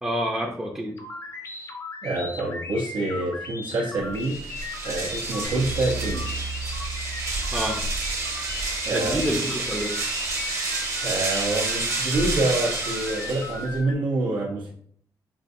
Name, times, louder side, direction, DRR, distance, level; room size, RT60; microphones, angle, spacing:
voice 1, 0.0-1.0 7.5-7.8 8.9-10.0, equal, 10° right, -3 dB, 0.5 m, -28 dB
sound 1, 1.0-13.9, left 3 dB, 40° left, 0.6 m, -38 dB
voice 2, 2.0-6.3 8.8-9.3 11.0-14.7, right 2 dB, 75° right, -3 dB, 0.7 m, -27 dB
sound 2, 4.1-13.8, right 3 dB, 40° right, 0.9 m, -30 dB
sound 3, 5.4-9.8, right 3 dB, 75° left, 0.7 m, -37 dB
5.0 x 2.5 x 2.6 m, 0.62 s
cardioid pair, 110°, 8 cm